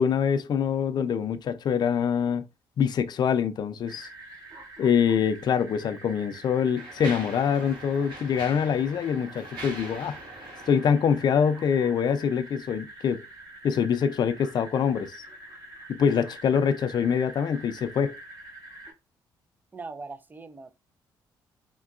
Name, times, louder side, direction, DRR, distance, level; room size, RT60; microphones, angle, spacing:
voice 1, 0.0-2.5 2.8-4.1 4.8-10.2 10.7-13.2 13.6-15.2 15.9-18.1, left 7 dB, 55° left, 0.4 m, -24 dB
sound 1, 3.8-18.9, right 1 dB, 45° right, 1.3 m, -46 dB
Mechanisms, 5.4-5.5 6.2-12.0, right 2 dB, 65° right, 1.6 m, -43 dB
voice 2, 19.7-20.7, right 3 dB, 20° right, 0.4 m, -40 dB
3.6 x 2.2 x 2.3 m
cardioid pair, 75°, 9 cm